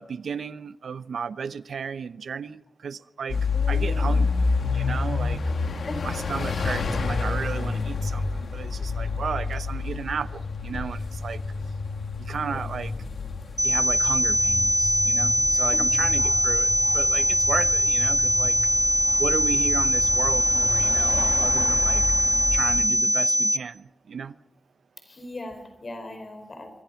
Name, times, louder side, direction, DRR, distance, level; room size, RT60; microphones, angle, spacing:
voice 1, 0.0-4.3 4.7-5.4 6.0-11.4 12.2-12.9 13.6-18.6 19.2-22.1 22.5-24.4, right 6 dB, 90° right, 0.8 m, -33 dB
sound 1, 3.3-22.8, left 4 dB, 70° left, 2.2 m, -29 dB
voice 2, 3.5-4.2 5.6-6.0 12.4-12.6 15.5-15.8 21.1-21.3 25.0-26.7, left 2 dB, 40° left, 4.9 m, -39 dB
sound 2, 13.6-23.6, equal, ahead, 1.3 m, -22 dB
26.5 x 24.5 x 5.8 m
wide cardioid pair, 145°, 0 cm